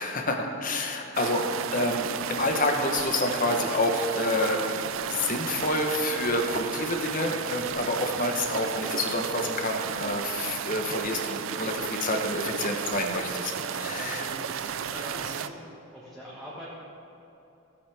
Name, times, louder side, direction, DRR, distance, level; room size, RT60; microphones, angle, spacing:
voice 1, 0.0-14.2, left 2 dB, 40° left, 3 dB, 1.0 m, -28 dB
sound 1, 1.1-15.5, right 8 dB, 65° right, 0.4 m, -33 dB
voice 2, 12.3-12.7 13.5-13.7 13.9-15.6 15.9-16.7, equal, ahead, -9 dB, 1.6 m, -44 dB
16.0 x 8.2 x 3.5 m, 3.0 s
head